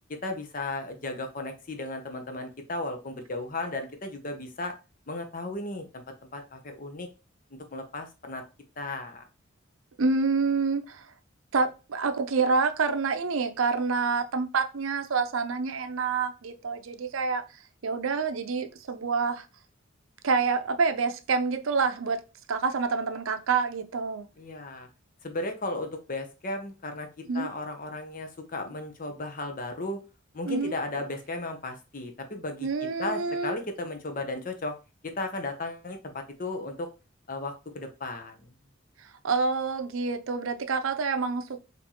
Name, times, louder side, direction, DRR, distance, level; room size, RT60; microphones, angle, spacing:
voice 1, 0.1-4.8 5.1-6.0 6.3-7.1 7.7-8.4 8.8-9.2 24.4-24.9 25.2-27.1 27.3-30.0 30.3-32.7 33.0-34.8 35.0-36.9 37.3-38.5, left 2 dB, 40° left, 0.7 m, -35 dB
voice 2, 10.0-11.1 11.5-17.4 17.8-19.5 20.2-22.2 22.5-24.3 27.3-27.5 30.5-30.7 32.6-33.5 39.0-41.6, right 4 dB, 80° right, 0.6 m, -27 dB
4.3 x 2.7 x 2.9 m
head